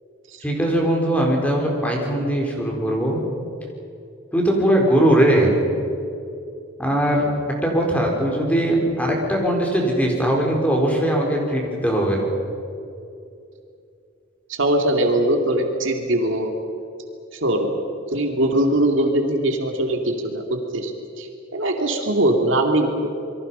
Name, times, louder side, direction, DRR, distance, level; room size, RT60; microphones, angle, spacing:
voice 1, 0.4-3.2 4.3-5.6 6.8-12.2, right 1 dB, 5° left, 0 dB, 4.2 m, -20 dB
voice 2, 14.6-16.5 17.3-17.8 18.1-20.9 21.2-23.1, right 1 dB, 70° right, 3 dB, 2.5 m, -21 dB
28.0 x 23.0 x 5.6 m, 2.6 s
head